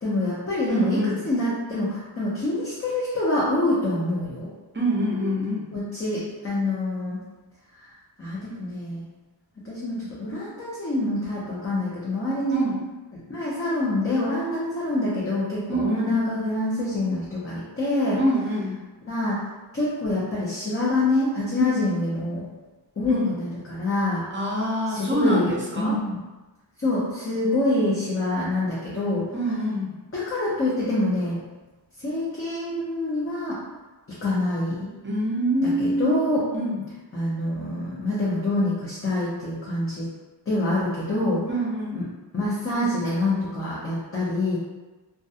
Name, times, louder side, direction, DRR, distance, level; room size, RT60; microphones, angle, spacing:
voice 1, 0.0-1.0 1.2-4.5 5.7-7.2 7.8-7.9 8.2-9.0 9.6-12.6 13.1-18.2 19.1-19.4 19.7-22.4 23.0-24.2 24.9-25.5 25.8-26.2 26.8-29.2 30.1-31.4 32.0-33.6 34.2-34.9 35.8-36.4 37.1-40.1 40.5-41.4 41.9-42.0 42.3-44.6, left 2 dB, 30° left, -8 dB, 0.6 m, -26 dB
voice 2, 0.7-1.2 4.7-5.7 12.5-12.7 15.7-16.1 18.2-18.8 21.6-21.8 23.1-23.3 24.3-26.0 29.3-29.9 35.0-36.2 36.5-36.8 41.5-42.0, right 1 dB, 25° right, -3 dB, 0.6 m, -25 dB
2.3 x 2.2 x 2.7 m, 1.2 s
wide cardioid pair, 65°, 44 cm